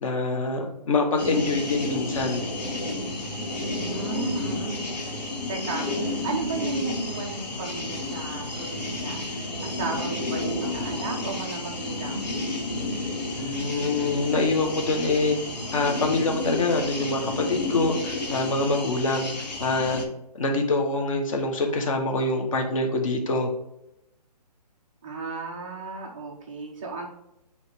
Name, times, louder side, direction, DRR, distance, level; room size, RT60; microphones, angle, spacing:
voice 1, 0.0-2.4 13.3-15.4 15.7-19.3 19.6-20.0 20.3-23.5, left 3 dB, 50° left, 3 dB, 1.4 m, -25 dB
sound 1, 1.2-20.0, left 2 dB, 75° left, 2.5 m, -31 dB
voice 2, 3.7-5.1 5.5-12.3 25.0-27.1, right 4 dB, 10° right, -5 dB, 0.3 m, -34 dB
9.1 x 3.2 x 3.7 m, 0.85 s
hypercardioid pair, 165°, 21 cm